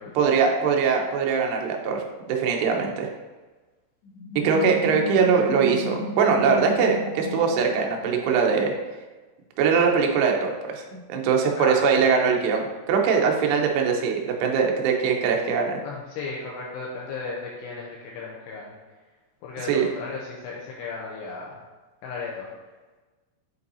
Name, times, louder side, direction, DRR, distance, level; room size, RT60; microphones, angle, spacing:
voice 1, 0.1-2.0 2.3-3.1 4.4-8.7 9.6-15.8 19.7-19.9, right 6 dB, 85° right, 1 dB, 2.4 m, -22 dB
sound 1, 4.0-8.5, left 2 dB, 50° left, 2.9 m, -33 dB
voice 2, 11.5-12.1 15.8-18.7 19.4-21.6 22.0-22.5, left 4 dB, 85° left, -3 dB, 2.4 m, -35 dB
7.4 x 5.4 x 2.7 m, 1.2 s
omnidirectional pair, 5.7 m